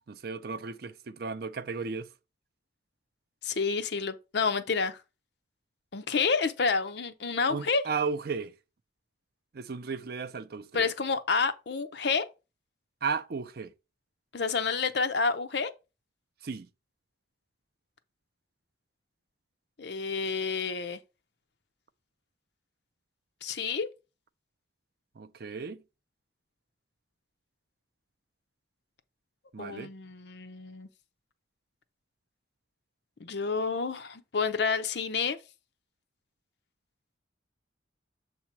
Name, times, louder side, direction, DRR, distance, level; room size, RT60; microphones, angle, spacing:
voice 1, 0.1-2.1 7.5-8.5 9.5-10.9 13.0-13.7 16.4-16.7 25.2-25.8 29.5-29.9, right 5 dB, 50° right, 0.5 m, -34 dB
voice 2, 3.4-5.0 5.9-7.8 10.7-12.3 14.3-15.7 19.8-21.0 23.4-23.9 29.6-30.9 33.2-35.4, left 5 dB, 60° left, 0.6 m, -29 dB
7.4 x 2.9 x 5.8 m
head